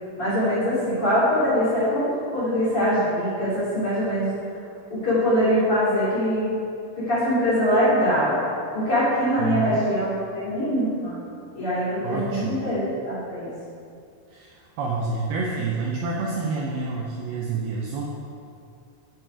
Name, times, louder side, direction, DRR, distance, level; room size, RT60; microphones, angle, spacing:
voice 1, 0.2-4.3 4.9-6.5 7.1-8.4 8.7-11.2 11.5-13.5, equal, 35° left, -11 dB, 2.8 m, -23 dB
voice 2, 9.4-9.8 12.0-12.6 14.3-18.1, right 4 dB, 80° right, -2 dB, 2.3 m, -28 dB
11.0 x 6.2 x 4.8 m, 2.4 s
omnidirectional pair, 5.2 m